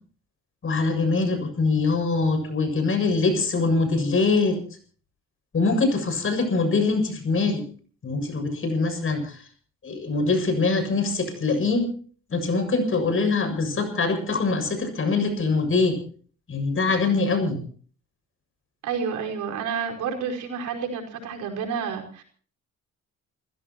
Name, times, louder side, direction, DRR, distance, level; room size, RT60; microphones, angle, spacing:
voice 1, 0.6-4.6 5.5-7.6 8.0-9.4 9.8-11.9 12.3-16.0 16.5-17.6, left 3 dB, 45° left, 7 dB, 7.4 m, -23 dB
voice 2, 18.8-22.2, right 6 dB, 85° right, 1 dB, 5.0 m, -30 dB
29.0 x 16.0 x 3.0 m, 0.43 s
cardioid pair, 90°, 30 cm